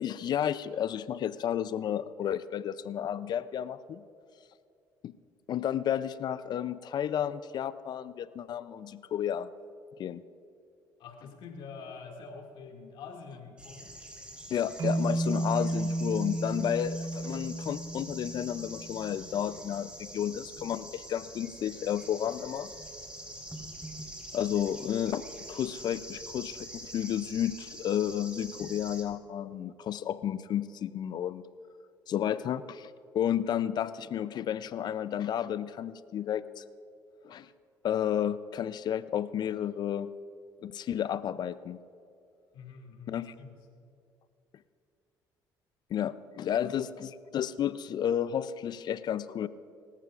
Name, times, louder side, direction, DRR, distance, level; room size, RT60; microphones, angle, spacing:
voice 1, 0.0-4.0 5.0-5.1 5.5-9.5 10.0-10.2 14.5-22.7 24.3-31.4 32.1-36.6 37.2-37.5 37.8-40.1 40.6-41.8 43.1-43.3 45.9-49.5, left 10 dB, 55° left, 15 dB, 0.5 m, -32 dB
voice 2, 11.0-13.9 42.5-43.6 46.6-46.7, left 5 dB, 70° left, 1 dB, 2.2 m, -46 dB
sound 1, 13.6-29.0, right 1 dB, 10° right, 3.9 m, -45 dB
sound 2, 14.8-19.1, right 2 dB, 45° right, 1.0 m, -32 dB
23.5 x 14.0 x 2.5 m, 2.5 s
supercardioid pair, 75°, 9 cm